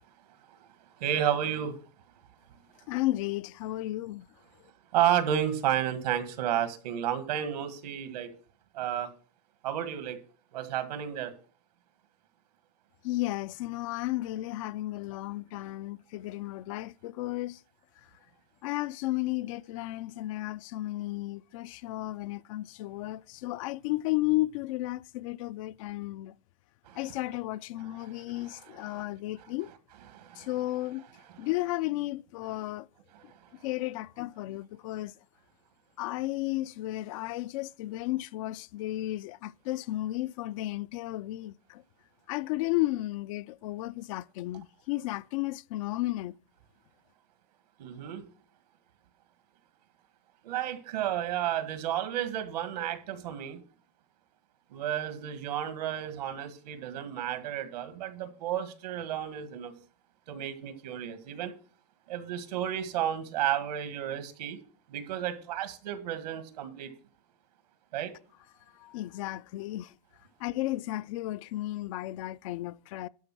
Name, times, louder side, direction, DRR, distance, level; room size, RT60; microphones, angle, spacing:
voice 1, 1.0-1.8 4.9-8.3 8.7-9.1 9.6-10.2 10.5-11.3 26.9-27.0 27.8-29.0 30.1-30.5 31.3-31.5 33.1-33.2 47.8-48.2 50.4-53.6 54.7-59.7 60.3-61.5 62.1-64.6 64.9-66.9 67.9-68.1, right 10 dB, 85° right, 1.7 m, -32 dB
voice 2, 2.9-4.3 13.0-17.6 18.6-26.3 27.0-29.7 30.4-31.1 31.4-32.9 33.6-35.1 36.0-41.8 42.3-46.3 68.8-69.9 70.4-73.1, left 17 dB, 55° left, 0.4 m, -33 dB
12.0 x 5.5 x 6.0 m
supercardioid pair, 155°, 20 cm